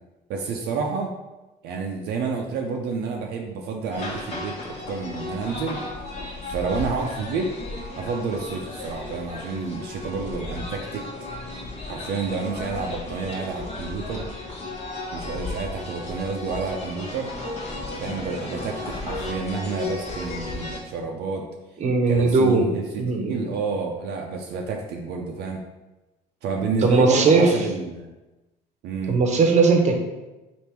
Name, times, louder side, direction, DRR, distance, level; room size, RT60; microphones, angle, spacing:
voice 1, 0.3-1.1 1.6-5.8 6.4-7.5 8.0-11.0 11.9-14.2 15.1-17.3 18.0-21.4 22.1-25.6 26.4-28.1 28.8-29.2, right 4 dB, 75° right, 1 dB, 0.5 m, -29 dB
sound 1, 3.9-20.8, left 2 dB, 40° left, 1.0 m, -34 dB
voice 2, 21.8-22.7 23.0-23.4 26.8-27.5 29.1-30.0, right 4 dB, 45° right, 2 dB, 0.7 m, -18 dB
3.4 x 2.5 x 4.3 m, 1.1 s
cardioid pair, 110°, 17 cm